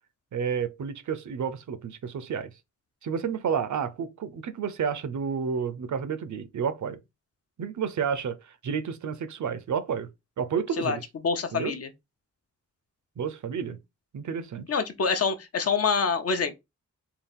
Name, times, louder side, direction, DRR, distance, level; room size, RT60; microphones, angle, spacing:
voice 1, 0.3-2.5 3.0-7.0 7.6-10.1 10.4-11.0 11.5-11.7 13.2-13.8 14.1-14.8, right 7 dB, 75° right, 0.6 m, -30 dB
voice 2, 10.8-11.9 14.7-16.6, left 5 dB, 55° left, 0.6 m, -26 dB
3.8 x 2.4 x 3.4 m
wide cardioid pair, 155°, 30 cm